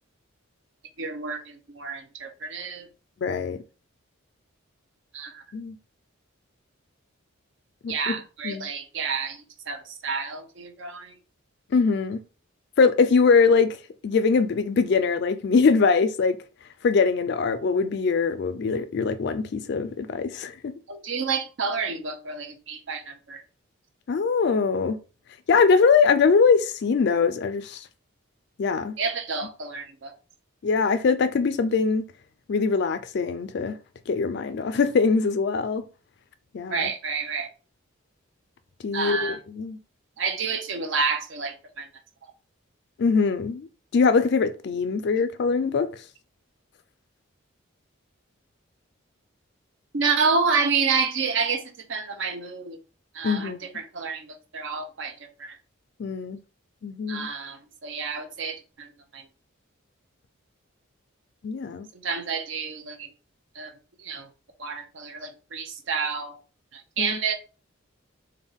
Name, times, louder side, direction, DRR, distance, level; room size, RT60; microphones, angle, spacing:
voice 1, 1.0-2.9 5.1-5.4 7.9-11.1 20.9-23.4 29.0-30.1 36.7-37.5 38.9-39.4 40.2-41.9 49.9-51.6 51.9-52.8 53.1-55.1 55.4-55.6 57.1-58.9 59.1-59.2 62.0-63.1 63.6-63.7 64.0-64.3 64.6-66.4 66.7-67.3, right 5 dB, 60° right, 0.6 m, -29 dB
voice 2, 3.2-3.6 5.5-5.8 7.8-8.2 8.4-8.7 11.7-12.2 12.8-13.8 14.0-16.4 16.8-20.7 24.1-25.0 25.5-27.8 28.6-29.0 30.6-32.0 32.5-33.8 34.1-35.8 36.5-36.9 38.8-39.8 43.0-45.9 53.2-53.6 56.0-56.4 56.8-57.3 61.4-61.9 67.0-67.2, left 5 dB, 55° left, 0.3 m, -22 dB
3.5 x 2.2 x 3.6 m
head